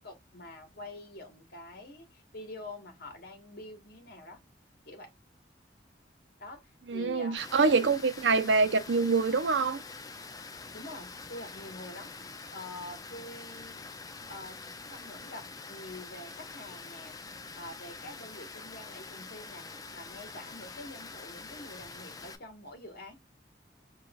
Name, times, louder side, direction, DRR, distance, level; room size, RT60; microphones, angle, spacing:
voice 1, 0.0-4.4 4.8-5.1 6.4-7.9 10.7-12.1 12.5-14.6 14.9-17.2 17.6-23.1, left 1 dB, 60° left, 1.2 m, -46 dB
voice 2, 6.9-9.8, right 4 dB, 80° right, 0.7 m, -25 dB
Water, 7.4-22.3, left 4 dB, 20° left, 0.5 m, -45 dB
4.6 x 2.5 x 2.2 m
head